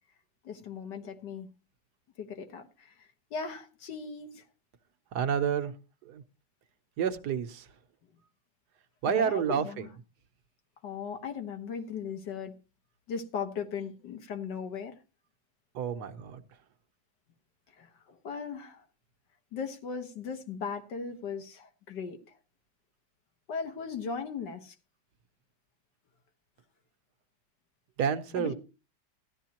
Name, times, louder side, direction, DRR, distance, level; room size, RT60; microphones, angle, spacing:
voice 1, 0.4-1.5 2.2-4.4 9.1-9.9 10.8-12.5 13.1-15.0 17.7-18.8 19.5-22.2 23.5-24.8 28.4-28.5, left 6 dB, 75° left, 1.9 m, -38 dB
voice 2, 5.1-5.7 6.0-6.2 7.0-7.7 9.0-9.9 15.7-16.4 28.0-28.5, right 7 dB, 70° right, 1.4 m, -29 dB
14.5 x 11.5 x 2.9 m
omnidirectional pair, 1.9 m